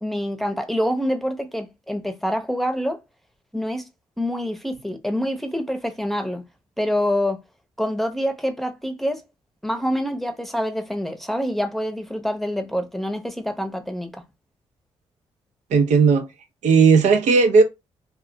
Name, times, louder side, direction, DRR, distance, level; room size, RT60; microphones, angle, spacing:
voice 1, 0.0-3.0 3.5-3.9 4.2-6.4 6.8-7.4 7.8-9.2 9.6-14.2, equal, ahead, 0.7 m, -26 dB
voice 2, 15.7-16.3 16.6-17.6, right 5 dB, 80° right, 0.6 m, -15 dB
2.3 x 2.1 x 3.7 m
supercardioid pair, 60°, 12 cm